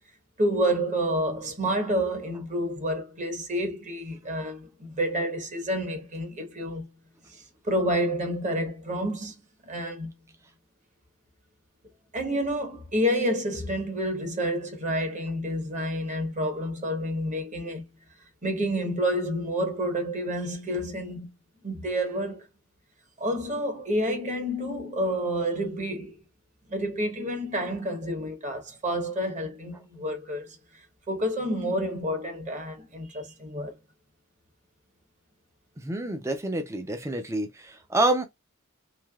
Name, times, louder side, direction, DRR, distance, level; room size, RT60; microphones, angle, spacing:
voice 1, 0.4-6.9 7.3-9.4 9.6-10.1 12.1-17.8 18.4-21.3 21.6-22.5 23.2-26.2 26.7-33.7, equal, 35° right, 1.0 m, -29 dB
voice 2, 35.8-38.2, right 2 dB, 15° right, 0.4 m, -27 dB
3.2 x 2.8 x 2.2 m
head